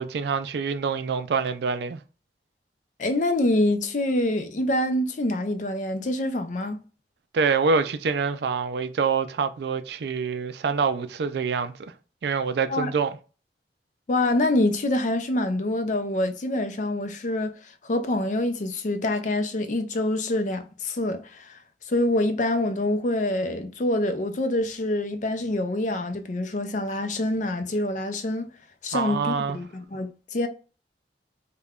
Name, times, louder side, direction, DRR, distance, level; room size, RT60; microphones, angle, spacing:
voice 1, 0.0-2.0 7.3-11.7 12.2-13.2 28.9-29.6, right 5 dB, 65° right, 0.4 m, -26 dB
voice 2, 3.0-6.8 12.7-12.9 14.1-21.6 21.9-28.5 28.8-30.5, left 1 dB, 45° left, 0.5 m, -26 dB
5.2 x 2.2 x 2.3 m
head